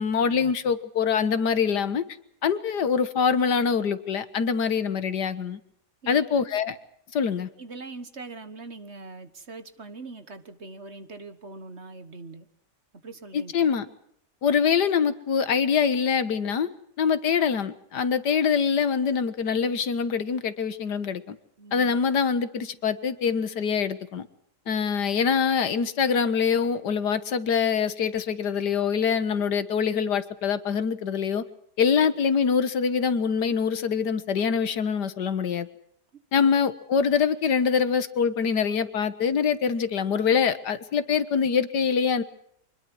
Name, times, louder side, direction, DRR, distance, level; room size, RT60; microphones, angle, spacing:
voice 1, 0.0-2.0 2.4-5.6 6.1-6.8 7.1-7.5 13.3-13.9 14.4-16.7 17.0-21.4 21.7-24.3 24.7-31.4 31.8-35.7 36.3-42.2, left 6 dB, 85° left, 13 dB, 2.0 m, -24 dB
voice 2, 7.6-12.5 13.0-13.7 21.6-22.0 36.1-36.5, right 3 dB, 45° right, 11 dB, 1.7 m, -42 dB
25.0 x 21.0 x 6.2 m, 0.72 s
omnidirectional pair, 1.7 m